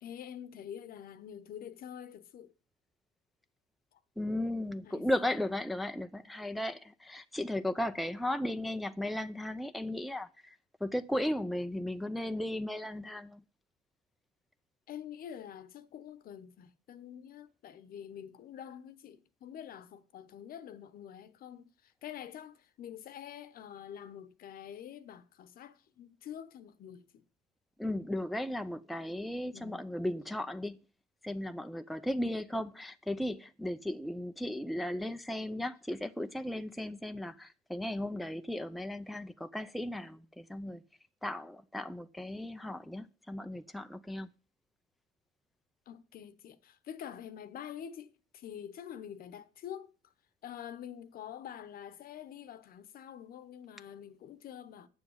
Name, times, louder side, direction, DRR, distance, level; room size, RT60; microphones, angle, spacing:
voice 1, 0.0-2.5 3.9-4.0 4.8-5.1 14.9-27.1 29.5-29.9 45.9-49.9 50.4-54.9, left 9 dB, 60° left, 1.0 m, -46 dB
voice 2, 4.2-10.6 10.8-13.4 27.8-30.8 31.2-40.8 41.2-44.3, left 1 dB, ahead, 0.6 m, -36 dB
9.1 x 7.1 x 7.2 m
cardioid pair, 110°, 17 cm